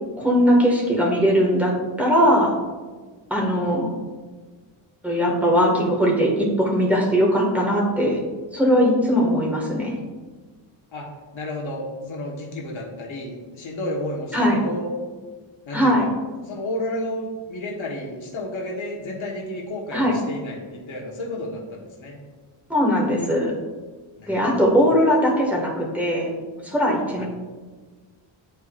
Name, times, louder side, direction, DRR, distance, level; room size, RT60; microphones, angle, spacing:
voice 1, 0.2-1.7 2.0-2.5 3.3-3.9 5.0-8.2 8.5-10.0 14.3-14.6 15.7-16.1 19.9-20.1 22.7-23.5 24.3-26.3 26.6-27.2, equal, 5° right, -4 dB, 1.8 m, -20 dB
voice 2, 10.9-14.9 15.7-16.1 16.4-22.2 24.2-24.9 27.1-27.2, left 1 dB, 75° left, -2 dB, 1.5 m, -32 dB
10.0 x 4.6 x 2.5 m, 1.4 s
cardioid pair, 95°, 47 cm